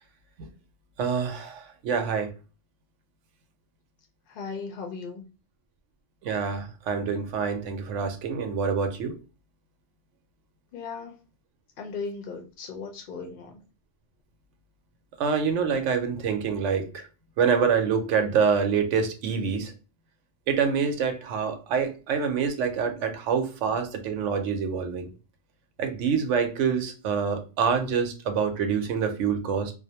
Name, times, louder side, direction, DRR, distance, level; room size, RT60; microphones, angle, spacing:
voice 1, 1.0-2.3 6.2-9.1 15.2-17.1 17.4-19.7 20.5-25.1 25.8-29.7, right 6 dB, 85° right, 7 dB, 0.9 m, -26 dB
voice 2, 4.3-5.3 10.7-11.2 11.8-13.6, left 4 dB, 60° left, 3 dB, 0.7 m, -37 dB
2.5 x 2.0 x 2.7 m, 0.33 s
omnidirectional pair, 1.2 m